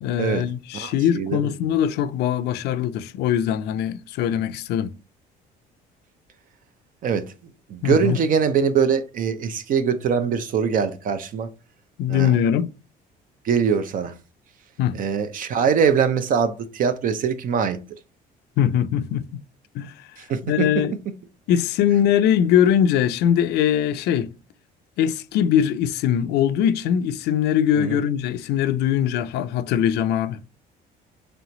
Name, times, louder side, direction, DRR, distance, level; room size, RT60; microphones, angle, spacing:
voice 1, 0.0-4.9 7.8-8.2 12.0-12.7 14.8-15.0 18.6-19.2 19.7-20.1 20.5-20.9 21.5-24.3 25.0-30.4, left 9 dB, 80° left, 0.4 m, -21 dB
voice 2, 0.7-1.5 7.0-7.2 7.7-11.5 12.1-12.3 13.4-14.1 14.9-17.8 20.2-20.7 27.8-28.0, right 7 dB, 55° right, 0.5 m, -22 dB
3.3 x 3.0 x 3.8 m
cardioid pair, 110°, 17 cm